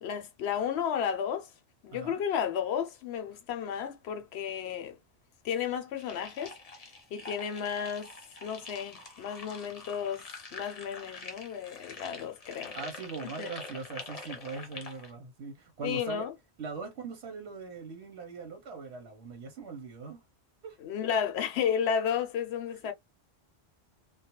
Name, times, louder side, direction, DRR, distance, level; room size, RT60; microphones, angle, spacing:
voice 1, 0.0-1.5 1.8-5.0 5.4-6.5 7.1-8.1 8.4-10.2 10.5-12.8 13.4-13.5 15.8-16.3 20.8-22.9, left 8 dB, 75° left, 0.8 m, -32 dB
voice 2, 1.9-2.2 12.7-16.3 16.6-20.2 20.6-20.8, right 4 dB, 85° right, 1.0 m, -41 dB
sound 1, 6.0-15.1, left 3 dB, 40° left, 0.7 m, -45 dB
2.3 x 2.1 x 2.8 m
omnidirectional pair, 1.1 m